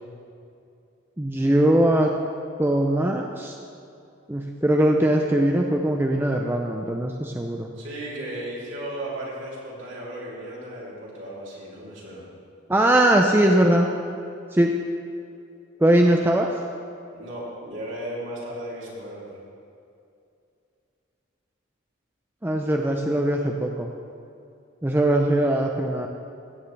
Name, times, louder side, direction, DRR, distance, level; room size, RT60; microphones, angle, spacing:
voice 1, 1.2-2.1 2.6-3.6 4.3-7.7 12.7-13.9 14.5-14.7 15.8-16.5 22.4-23.9 24.8-26.1, right 1 dB, 10° right, 2 dB, 0.5 m, -21 dB
voice 2, 7.7-12.2 17.1-19.3, right 1 dB, 65° right, -6 dB, 3.1 m, -35 dB
15.5 x 9.2 x 3.3 m, 2.5 s
head